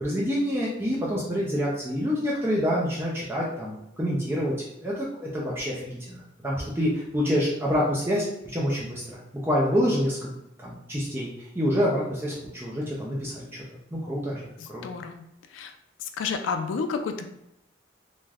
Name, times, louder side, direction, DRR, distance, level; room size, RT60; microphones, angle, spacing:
voice 1, 0.0-4.5 4.8-6.2 6.4-10.3 10.6-13.6 13.9-14.4 14.7-14.8, equal, 10° right, -5 dB, 0.5 m, -27 dB
voice 2, 14.6-15.7 16.0-17.2, left 5 dB, 80° left, 6 dB, 0.3 m, -31 dB
3.2 x 2.5 x 2.3 m, 0.86 s
head